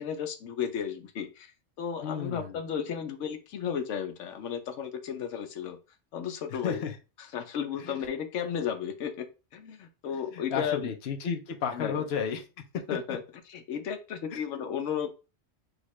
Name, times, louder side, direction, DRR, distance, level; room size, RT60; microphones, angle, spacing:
voice 1, 0.0-5.8 6.1-6.8 7.2-9.3 9.5-10.9 11.7-12.0 12.9-13.2 13.5-15.1, left 8 dB, 85° left, 7 dB, 1.0 m, -34 dB
voice 2, 2.0-2.6 6.6-6.9 7.8-7.9 10.3-12.4 14.3-14.4, left 6 dB, 65° left, 4 dB, 0.9 m, -32 dB
6.4 x 2.4 x 3.1 m, 0.31 s
omnidirectional pair, 1.2 m